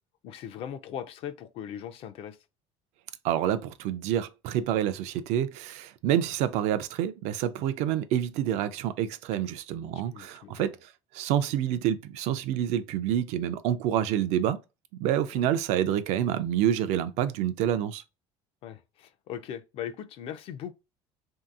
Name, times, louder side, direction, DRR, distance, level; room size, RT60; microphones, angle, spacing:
voice 1, 0.2-2.4 10.1-10.7 15.3-15.5 18.6-20.7, left 9 dB, 50° left, 0.4 m, -39 dB
voice 2, 3.2-10.8 11.1-14.6 15.0-18.0, right 10 dB, 65° right, 0.4 m, -27 dB
3.1 x 2.7 x 2.3 m
cardioid pair, 145°, 12 cm